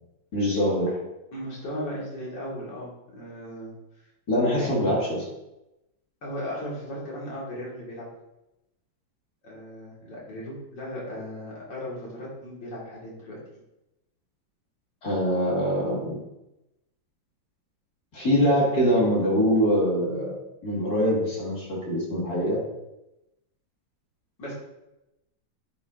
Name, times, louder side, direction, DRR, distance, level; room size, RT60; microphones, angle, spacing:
voice 1, 0.3-1.0 4.3-5.2 15.0-16.2 18.1-20.3 20.6-22.6, equal, 55° left, -5 dB, 2.3 m, -23 dB
voice 2, 1.3-3.7 4.5-4.7 6.2-8.1 9.4-13.4 24.4-24.5, equal, 75° left, -5 dB, 2.6 m, -36 dB
9.8 x 5.3 x 2.5 m, 0.93 s
omnidirectional pair, 2.1 m